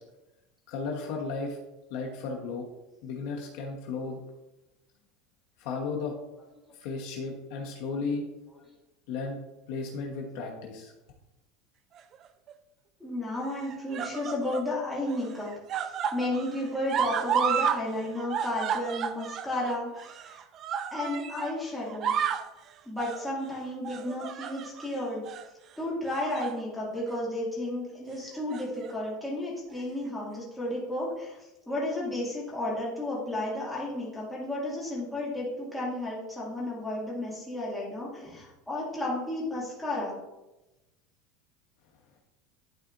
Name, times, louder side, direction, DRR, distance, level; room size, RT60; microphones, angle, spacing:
voice 1, 0.7-1.6 1.9-2.7 3.0-4.2 5.6-6.1 6.8-8.2 9.1-9.4 9.7-10.9, left 4 dB, 55° left, 0 dB, 1.1 m, -34 dB
sound 1, 12.0-12.5 13.4-14.7 15.1-17.8 18.1-21.5 21.9-22.5 23.0-23.3 23.8-24.9 25.2-25.5 26.1-26.6 27.0-27.2 28.3-28.9 29.8-29.9, right 8 dB, 30° right, 0.3 m, -32 dB
voice 2, 13.0-15.5 15.8-20.4 20.9-22.1 22.9-25.2 25.8-40.2, left 1 dB, 5° left, -7 dB, 2.3 m, -33 dB
12.0 x 4.2 x 2.6 m, 0.99 s
supercardioid pair, 170°, 0 cm